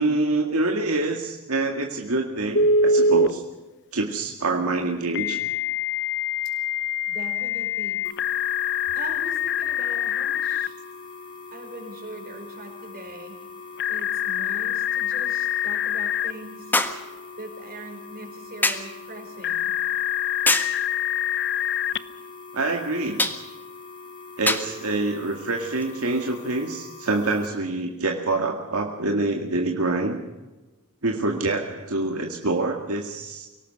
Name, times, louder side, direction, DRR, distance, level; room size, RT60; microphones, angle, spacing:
voice 1, 0.0-3.4 3.9-5.4 22.5-23.2 24.4-30.2 31.0-33.5, right 2 dB, 75° right, 2 dB, 2.0 m, -26 dB
Telephone, 2.5-3.3 5.1-10.7 13.8-16.3 19.4-22.0, left 5 dB, 55° left, 0.8 m, -24 dB
voice 2, 7.1-8.1 8.9-10.7 11.5-13.4 13.9-16.8 17.1-19.8, right 2 dB, 45° right, 4 dB, 4.9 m, -41 dB
sound 1, 8.0-27.5, left 4 dB, 25° left, 4.5 m, -43 dB
sound 2, 12.9-13.0 16.7-17.1 18.6-18.9 20.5-20.8 23.2-23.4 24.5-24.7 25.8-25.9, left 2 dB, 10° left, 1.5 m, -23 dB
24.0 x 18.0 x 6.5 m, 1.1 s
head